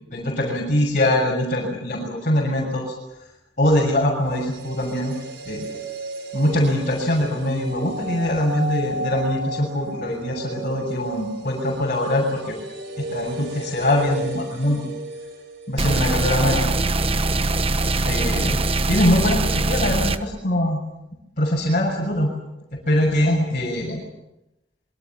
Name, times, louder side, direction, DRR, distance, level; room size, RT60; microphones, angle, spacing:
voice 1, 0.1-2.9 3.6-5.2 5.5-5.7 6.3-12.6 13.0-14.9 15.7-16.6 18.0-18.6 18.9-20.8 21.4-22.3 22.9-24.0, left 1 dB, 45° left, -3 dB, 6.8 m, -22 dB
sound 1, 4.1-16.3 16.5-16.6, right 1 dB, 65° right, 4.8 m, -34 dB
sound 2, 15.8-20.2, right 2 dB, 30° right, 1.2 m, -22 dB
26.5 x 24.0 x 7.3 m, 0.90 s
head